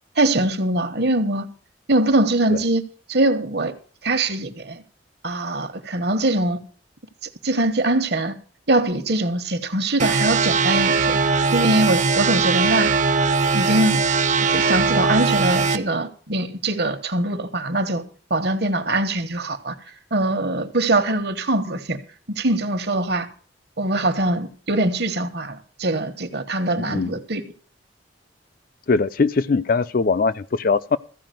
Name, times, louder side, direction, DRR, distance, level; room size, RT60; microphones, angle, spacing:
voice 1, 0.2-1.5 1.9-2.8 3.1-3.7 4.0-4.8 5.2-6.6 7.4-8.3 8.7-11.2 11.5-12.9 13.5-14.0 14.5-18.0 18.3-19.8 20.1-22.0 22.3-23.3 23.8-27.5, right 2 dB, 60° right, 1.2 m, -22 dB
sound 1, 10.0-15.8, right 4 dB, 40° right, 0.7 m, -20 dB
voice 2, 26.9-27.2 28.9-31.0, left 4 dB, 50° left, 0.4 m, -21 dB
14.5 x 5.0 x 9.1 m
head